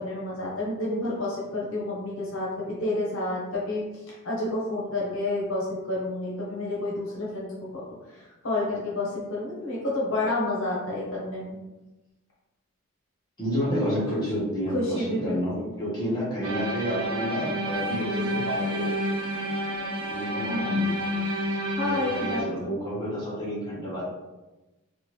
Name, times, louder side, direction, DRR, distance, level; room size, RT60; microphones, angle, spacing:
voice 1, 0.0-7.8 8.1-11.6 14.7-15.7 16.0-16.2 20.4-20.7 21.8-22.7, left 2 dB, 60° left, -4 dB, 0.9 m, -30 dB
voice 2, 13.4-18.8 20.1-21.3 21.8-24.1, equal, 20° left, -8 dB, 1.1 m, -30 dB
sound 1, 16.4-22.4, equal, 80° right, 0.6 m, -29 dB
3.4 x 2.4 x 3.0 m, 1.1 s
head